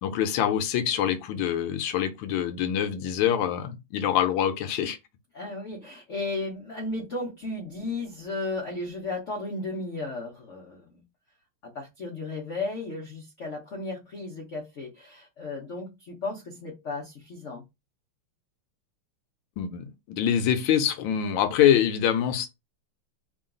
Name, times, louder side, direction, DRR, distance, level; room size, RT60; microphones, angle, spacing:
voice 1, 0.0-5.0 19.6-22.5, left 9 dB, 75° left, 1.2 m, -25 dB
voice 2, 5.3-11.0 11.7-17.6, left 2 dB, 90° left, 0.6 m, -34 dB
3.7 x 2.3 x 3.7 m
omnidirectional pair, 2.4 m